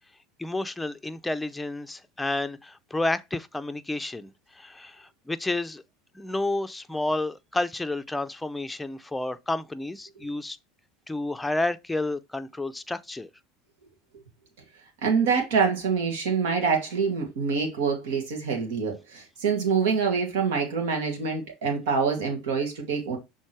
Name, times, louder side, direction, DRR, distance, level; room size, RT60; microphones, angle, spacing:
voice 1, 0.4-5.8 6.1-10.6 11.1-13.3, left 2 dB, 10° left, 0.6 m, -30 dB
voice 2, 15.0-23.2, right 5 dB, 75° right, 2.1 m, -26 dB
6.4 x 3.6 x 4.5 m
hypercardioid pair, 85°, 0 cm